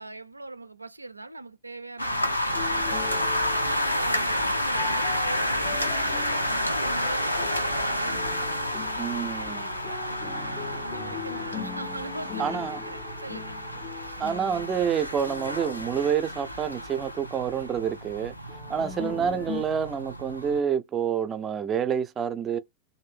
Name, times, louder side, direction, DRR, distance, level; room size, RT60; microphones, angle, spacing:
voice 1, 0.0-3.1 3.3-8.3 9.4-13.6 14.0-14.2 18.7-19.0, right 2 dB, 85° right, 0.4 m, -41 dB
sound 1, 2.0-20.6, left 1 dB, 85° left, 0.6 m, -30 dB
sound 2, 2.5-17.2 18.5-19.6, left 9 dB, 35° left, 0.5 m, -41 dB
voice 2, 9.0-9.7 12.4-12.8 14.2-18.3 18.7-22.6, right 8 dB, 25° right, 0.5 m, -28 dB
3.1 x 2.6 x 3.3 m
figure-of-eight pair, 90°, 0 cm